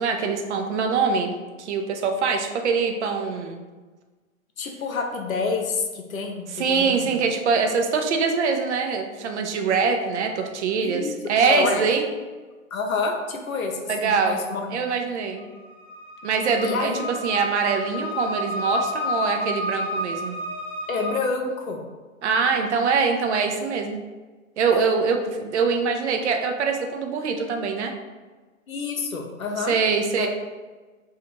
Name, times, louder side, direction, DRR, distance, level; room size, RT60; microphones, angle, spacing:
voice 1, 0.0-1.3 1.6-3.6 6.6-12.0 13.9-14.4 14.7-15.4 16.2-16.9 17.2-20.4 22.2-24.0 24.6-27.9 29.7-30.3, right 5 dB, 55° right, 4 dB, 0.5 m, -23 dB
voice 2, 4.6-7.2 10.8-11.8 12.7-14.7 16.6-17.1 20.9-21.8 24.7-24.9 28.7-29.8 30.2-30.3, left 4 dB, 80° left, 2 dB, 0.6 m, -28 dB
sound 1, 15.4-21.1, left 1 dB, 5° right, 1.1 m, -30 dB
2.5 x 2.4 x 3.0 m, 1.3 s
figure-of-eight pair, 115°, 41 cm